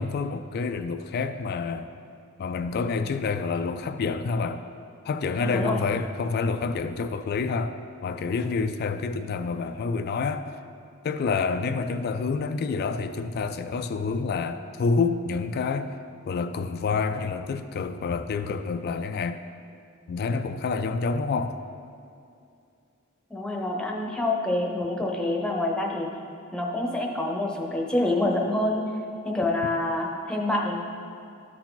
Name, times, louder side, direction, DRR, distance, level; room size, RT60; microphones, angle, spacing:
voice 1, 0.0-1.9 2.4-4.6 5.1-7.8 8.0-10.4 11.0-15.9 16.2-19.4 20.1-21.6, left 4 dB, 45° left, 9 dB, 0.3 m, -28 dB
voice 2, 5.4-5.8 23.3-26.1 26.5-28.8 29.2-30.8, left 2 dB, 5° left, -1 dB, 0.8 m, -27 dB
13.0 x 4.7 x 3.8 m, 2.5 s
head